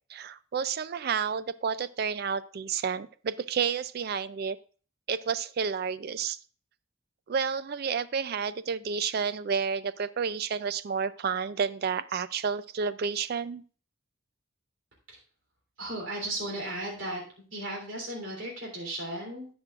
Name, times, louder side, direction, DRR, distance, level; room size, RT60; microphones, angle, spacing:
voice 1, 0.1-4.6 5.1-6.4 7.3-13.6, right 6 dB, 50° right, 15 dB, 0.4 m, -30 dB
voice 2, 15.8-17.2 17.5-19.5, right 1 dB, 70° right, 0 dB, 3.4 m, -35 dB
18.0 x 6.2 x 2.4 m, 0.40 s
head